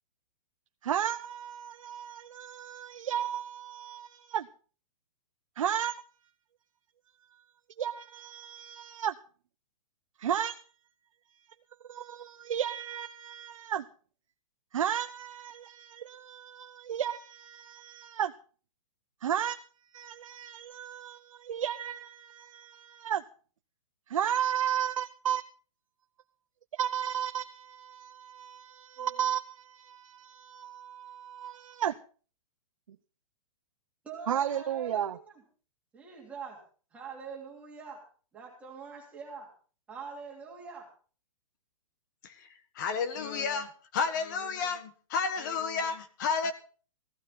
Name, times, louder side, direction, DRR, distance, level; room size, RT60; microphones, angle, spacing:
voice 1, 0.8-4.5 5.6-5.9 7.8-9.1 10.2-10.6 11.9-13.9 14.7-18.3 19.2-19.6 19.9-23.2 24.1-25.4 26.7-32.0 34.3-35.2, right 10 dB, 65° right, 0.8 m, -34 dB
voice 2, 34.0-35.2 35.9-36.6 36.9-38.0 38.3-39.5 39.9-40.9, right 5 dB, 5° right, 2.8 m, -44 dB
voice 3, 42.8-46.5, left 5 dB, 35° left, 1.6 m, -31 dB
16.0 x 14.5 x 4.0 m
hypercardioid pair, 175°, 18 cm